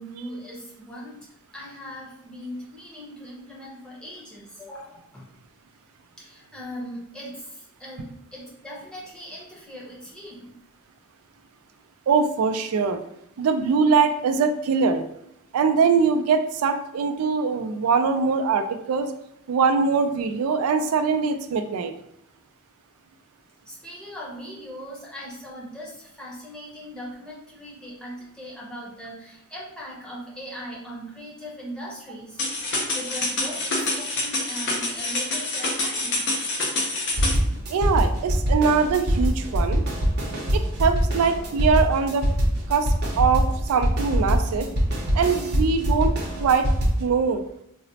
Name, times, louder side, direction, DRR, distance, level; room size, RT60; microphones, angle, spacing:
voice 1, 0.0-5.3 6.2-10.5 23.7-32.4 32.9-36.3, equal, 5° left, -6 dB, 0.8 m, -39 dB
voice 2, 12.1-13.0 13.4-15.1 15.5-19.1 19.5-21.9 37.7-39.8 40.5-42.3 42.7-44.7 45.1-46.7 47.0-47.4, right 5 dB, 80° right, 8 dB, 0.3 m, -22 dB
sound 1, 32.4-37.4, left 2 dB, 55° left, 0.7 m, -27 dB
sound 2, 37.2-47.0, equal, 50° right, 0.7 m, -23 dB
3.9 x 2.0 x 2.7 m, 0.79 s
head